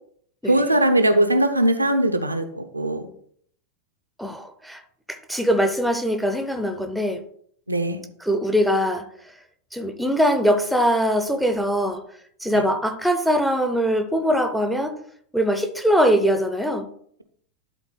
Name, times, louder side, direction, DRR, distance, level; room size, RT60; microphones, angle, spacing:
voice 1, 0.5-3.1 7.7-8.0, right 1 dB, 85° right, 0.8 m, -20 dB
voice 2, 4.2-4.8 5.1-7.2 8.2-9.1 9.7-12.0 12.4-15.0 15.3-16.9, equal, ahead, 0.8 m, -22 dB
12.0 x 4.0 x 3.9 m
figure-of-eight pair, 90°, 0 cm